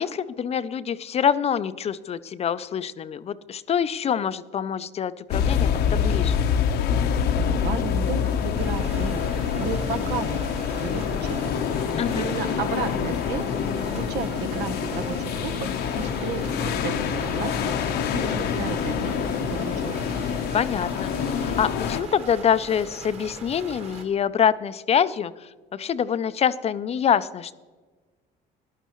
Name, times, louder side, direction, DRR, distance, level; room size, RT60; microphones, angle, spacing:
voice 1, 0.0-6.3 12.0-12.3 20.5-27.6, left 8 dB, 40° left, 15 dB, 0.5 m, -25 dB
sound 1, 5.3-22.0, left 7 dB, 75° left, 0.8 m, -26 dB
voice 2, 7.4-10.5 10.8-13.5 14.0-17.7 18.1-20.1, right 5 dB, 80° right, 9 dB, 1.0 m, -33 dB
sound 2, 8.6-24.0, right 3 dB, 40° right, 2.0 m, -41 dB
15.0 x 11.0 x 3.0 m, 1.3 s
cardioid pair, 110°, 17 cm